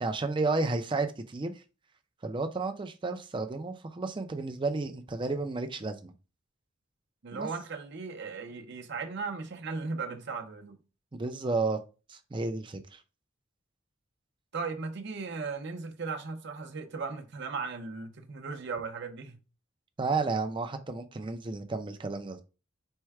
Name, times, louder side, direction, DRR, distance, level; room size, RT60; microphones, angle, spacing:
voice 1, 0.0-1.5 2.2-6.1 7.3-7.5 11.1-11.8 12.1-13.0 20.0-22.4, right 3 dB, 25° right, 0.4 m, -32 dB
voice 2, 7.2-10.8 14.5-19.4, right 4 dB, 60° right, 0.7 m, -37 dB
4.4 x 2.2 x 4.6 m
head